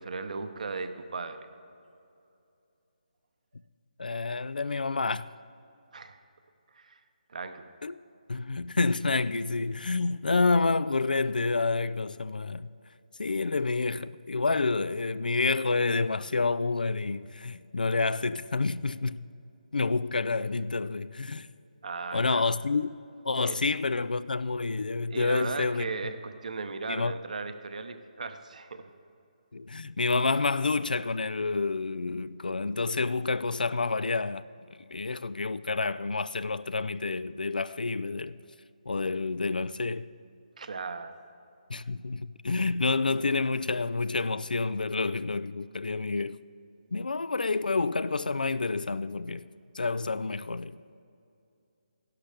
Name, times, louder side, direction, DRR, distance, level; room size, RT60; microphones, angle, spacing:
voice 1, 0.0-1.4 5.9-6.2 6.7-7.0 7.3-7.6 21.8-22.4 23.4-23.7 25.1-28.9 40.6-41.1, right 4 dB, 60° right, 0.8 m, -37 dB
voice 2, 4.0-5.2 7.8-8.0 8.3-12.7 13.2-19.3 19.7-21.5 22.1-22.9 23.2-25.9 26.9-27.1 29.5-34.5 34.9-38.3 38.9-40.1 41.7-46.4 46.9-49.4 49.8-50.8, left 3 dB, 90° left, 0.3 m, -28 dB
11.5 x 11.5 x 3.4 m
figure-of-eight pair, 160°, 5 cm